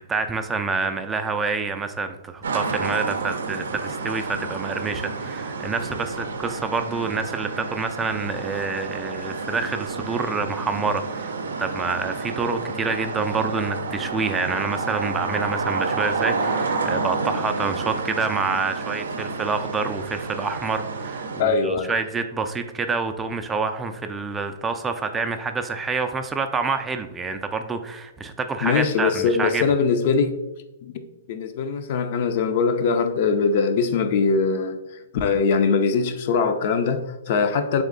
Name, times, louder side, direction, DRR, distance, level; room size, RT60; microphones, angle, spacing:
voice 1, 0.1-29.6, right 4 dB, 15° right, 0.3 m, -27 dB
sound 1, 2.4-21.4, right 4 dB, 80° right, 0.5 m, -30 dB
voice 2, 21.4-21.9 28.6-30.3 30.8-30.9 31.3-34.8 35.1-37.8, left 5 dB, 50° left, 0.4 m, -22 dB
3.6 x 3.2 x 3.7 m
hypercardioid pair, 130°, 0 cm